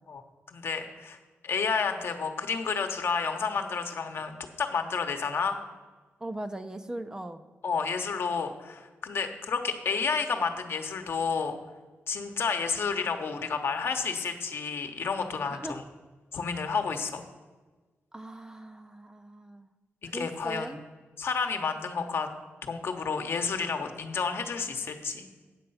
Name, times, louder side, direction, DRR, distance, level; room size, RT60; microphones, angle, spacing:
voice 1, 0.5-1.2 1.4-5.6 7.6-11.6 12.1-15.8 16.3-17.2 20.0-20.7 21.2-22.3 22.6-25.3, left 5 dB, 60° left, 6 dB, 0.9 m, -30 dB
voice 2, 6.2-7.4 15.5-15.8 18.1-19.7 20.0-20.8, right 1 dB, 15° right, 9 dB, 0.4 m, -39 dB
9.0 x 6.7 x 5.5 m, 1.3 s
wide cardioid pair, 135°, 4 cm